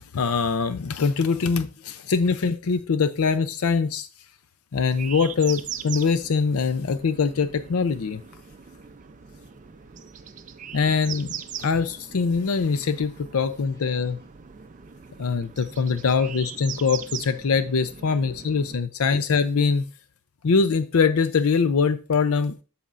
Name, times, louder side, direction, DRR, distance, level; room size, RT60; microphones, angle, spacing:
voice 1, 0.0-4.1 4.7-8.2 10.7-11.3 11.6-14.2 15.2-19.8 20.4-22.6, left 5 dB, 75° left, 0.5 m, -23 dB
sound 1, 4.9-18.8, right 8 dB, 35° right, 0.4 m, -40 dB
voice 2, 9.3-10.8 13.9-14.0 16.0-16.3 18.0-18.5, right 1 dB, 15° left, 1.5 m, -60 dB
12.5 x 4.3 x 2.5 m
head